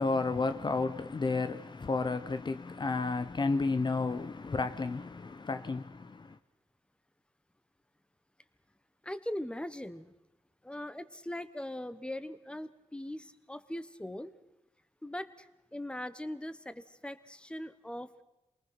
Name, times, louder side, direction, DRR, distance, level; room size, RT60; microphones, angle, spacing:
voice 1, 0.0-6.4, left 3 dB, 40° left, 0.9 m, -32 dB
voice 2, 9.0-10.1 10.6-14.3 15.0-18.2, left 1 dB, 10° left, 1.2 m, -40 dB
28.0 x 19.5 x 5.9 m
cardioid pair, 65°, 12 cm